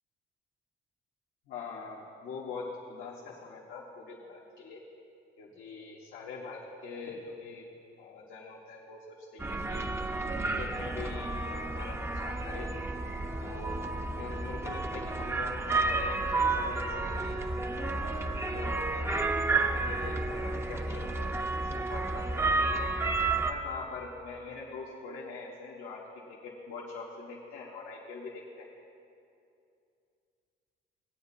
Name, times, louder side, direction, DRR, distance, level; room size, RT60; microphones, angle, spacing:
voice 1, 1.5-4.8 5.4-7.7 8.0-9.9 10.4-12.7 13.4-13.8 14.1-17.2 17.7-22.7 23.5-28.7, left 4 dB, 85° left, -5 dB, 1.4 m, -43 dB
sound 1, 9.4-23.5, right 3 dB, 15° right, 0.6 m, -31 dB
18.5 x 8.8 x 2.8 m, 2.5 s
cardioid pair, 90°, 20 cm